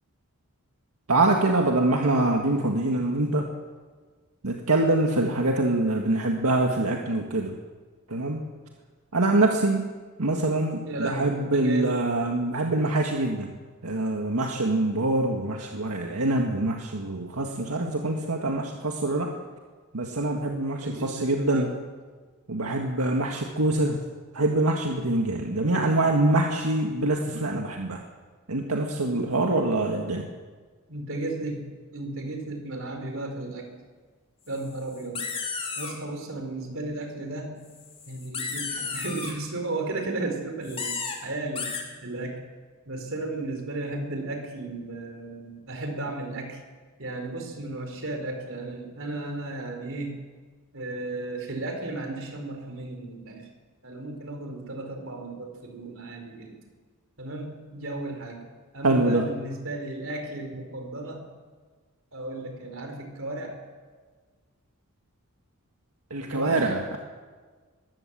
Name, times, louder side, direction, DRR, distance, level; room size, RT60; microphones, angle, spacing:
voice 1, 1.1-3.5 4.4-7.5 8.1-8.4 9.1-9.9 10.2-13.5 13.8-19.3 19.9-21.7 22.5-24.0 24.3-28.0 28.5-30.3 58.8-59.2 66.1-67.0, right 2 dB, 85° right, 2 dB, 1.8 m, -24 dB
voice 2, 10.9-12.0 20.8-21.7 30.9-33.7 34.5-35.2 35.8-37.7 38.1-42.4 42.8-46.6 47.0-50.2 50.7-53.5 53.8-56.6 57.2-58.4 58.7-61.3 62.1-63.6 66.3-66.8, right 2 dB, 60° right, 4 dB, 4.5 m, -34 dB
sound 1, 34.6-34.7 34.9-35.9 37.8-39.3 40.6-41.2 41.6-41.8, left 5 dB, 25° left, 3.2 m, -33 dB
22.0 x 16.5 x 7.6 m, 1.4 s
head